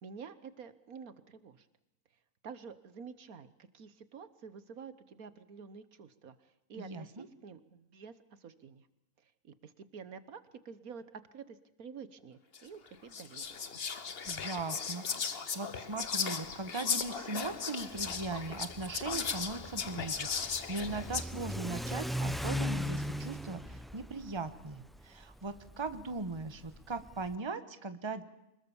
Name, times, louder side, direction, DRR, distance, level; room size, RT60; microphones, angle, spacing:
voice 1, 0.0-1.7 2.4-8.9 9.4-13.6, right 6 dB, 75° right, 14 dB, 1.7 m, -49 dB
voice 2, 6.8-7.2 14.3-28.2, right 3 dB, 20° right, 11 dB, 1.3 m, -39 dB
Whispering, 12.5-12.6 13.1-21.2, left 6 dB, 45° left, 1.3 m, -37 dB
Car / Accelerating revving vroom, 17.9-27.3, left 1 dB, ahead, 0.4 m, -39 dB
25.5 x 21.0 x 7.2 m, 0.89 s
omnidirectional pair, 1.5 m